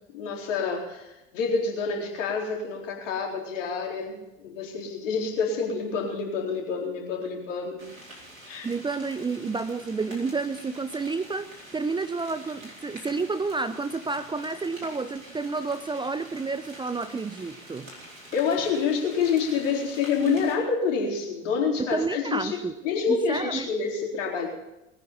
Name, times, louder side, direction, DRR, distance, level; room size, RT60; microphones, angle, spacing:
voice 1, 0.1-7.9 8.5-8.7 18.3-22.6 22.8-24.5, left 5 dB, 65° left, 0 dB, 4.1 m, -27 dB
sound 1, 7.8-20.5, right 1 dB, 85° right, 4.4 m, -46 dB
voice 2, 8.6-17.9 21.8-22.7 23.1-23.7, right 4 dB, 10° right, 12 dB, 0.6 m, -30 dB
20.0 x 9.5 x 7.5 m, 0.94 s
figure-of-eight pair, 70°, 40 cm